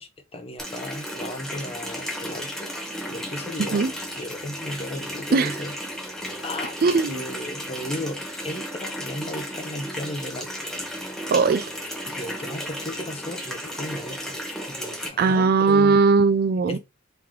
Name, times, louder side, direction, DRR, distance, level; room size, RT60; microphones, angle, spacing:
voice 1, 0.0-2.7 3.1-3.9 4.1-5.7 6.4-6.8 7.1-10.5 12.1-14.4 14.7-16.0 16.7-16.8, left 1 dB, 30° left, 0.6 m, -35 dB
Water tap faucet, 0.6-15.1, equal, 5° left, 0.9 m, -34 dB
voice 2, 6.8-7.2 11.3-11.7 15.2-16.8, right 4 dB, 50° right, 0.4 m, -19 dB
3.2 x 2.9 x 3.7 m
head